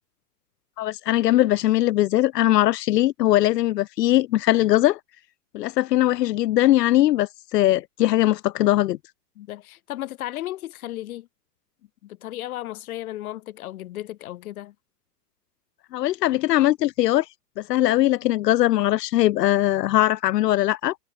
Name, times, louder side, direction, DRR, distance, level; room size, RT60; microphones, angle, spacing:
voice 1, 0.8-5.0 5.5-9.0 15.9-17.3 17.6-21.0, left 14 dB, 80° left, 0.5 m, -20 dB
voice 2, 9.4-11.3 12.0-14.7, left 14 dB, 60° left, 2.7 m, -34 dB
hypercardioid pair, 115°, 49 cm